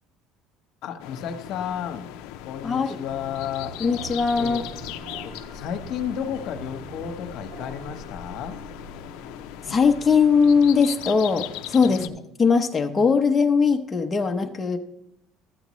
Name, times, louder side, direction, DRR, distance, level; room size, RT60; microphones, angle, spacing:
voice 1, 0.8-2.1 2.4-3.8 4.4-4.9 5.2-8.6 11.9-12.2, left 8 dB, 60° left, 7 dB, 1.0 m, -33 dB
sound 1, 1.0-12.1, left 13 dB, 85° left, 0.4 m, -39 dB
voice 2, 2.6-3.0 3.8-4.6 9.7-12.0 12.4-14.8, left 5 dB, 20° left, 4 dB, 0.7 m, -20 dB
sound 2, 3.1-11.0, right 2 dB, 80° right, 3.0 m, -43 dB
13.0 x 7.9 x 3.1 m, 0.87 s
cardioid pair, 130°, 0 cm